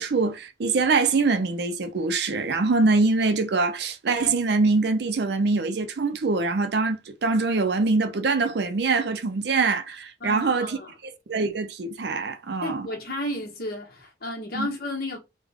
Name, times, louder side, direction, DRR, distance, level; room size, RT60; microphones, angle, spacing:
voice 1, 0.0-10.8 11.3-12.9 14.5-14.7, right 3 dB, 60° right, 0.5 m, -24 dB
voice 2, 10.2-10.9 12.6-15.2, left 1 dB, 55° left, 1.1 m, -32 dB
3.4 x 2.2 x 3.4 m
head